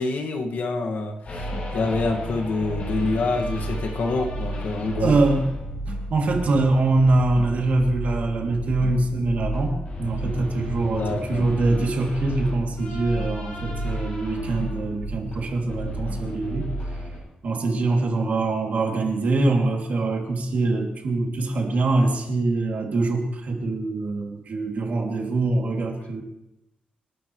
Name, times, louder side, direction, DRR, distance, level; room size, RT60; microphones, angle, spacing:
voice 1, 0.0-5.2 10.8-11.5, left 3 dB, 90° left, 2 dB, 2.0 m, -27 dB
sound 1, 1.2-17.2, equal, 50° left, 7.7 m, -32 dB
voice 2, 5.0-5.5 5.9-16.7 17.4-26.2, right 2 dB, 60° right, 1 dB, 2.9 m, -23 dB
28.5 x 11.5 x 3.3 m, 0.87 s
wide cardioid pair, 140°, 3 cm